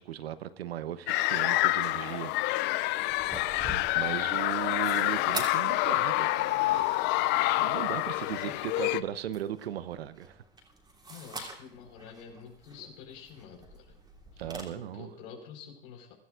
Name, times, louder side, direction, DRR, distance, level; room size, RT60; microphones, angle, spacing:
voice 1, 0.0-2.3 2.6-3.2 3.9-7.0 7.6-10.4 14.4-15.1, right 11 dB, 80° right, 0.9 m, -37 dB
sound 1, 1.1-9.0, left 18 dB, 35° left, 0.4 m, -27 dB
sound 2, 3.1-14.6, right 2 dB, 15° right, 3.2 m, -45 dB
voice 2, 11.1-14.0 14.3-16.1, left 7 dB, 60° left, 4.9 m, -48 dB
23.0 x 13.0 x 2.5 m
hypercardioid pair, 105°, 30 cm